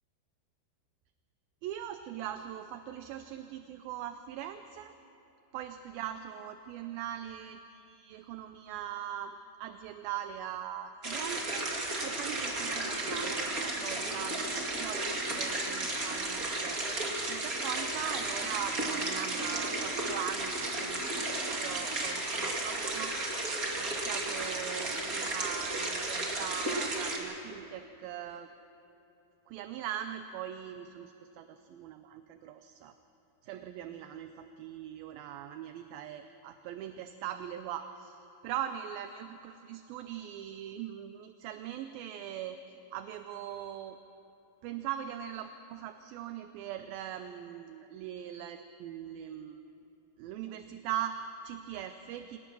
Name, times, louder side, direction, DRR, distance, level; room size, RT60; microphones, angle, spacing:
voice 1, 1.6-4.9 5.5-11.7 12.0-16.8 17.3-21.3 21.5-23.2 23.8-28.5 29.5-32.9 33.4-44.0 44.6-49.6 50.2-52.4, right 10 dB, 80° right, 9 dB, 2.3 m, -41 dB
sound 1, 11.0-27.2, right 2 dB, 30° right, 1.9 m, -34 dB
sound 2, 11.8-25.1, left 3 dB, 75° left, 5.8 m, -52 dB
25.5 x 18.5 x 6.2 m, 2.9 s
omnidirectional pair, 4.5 m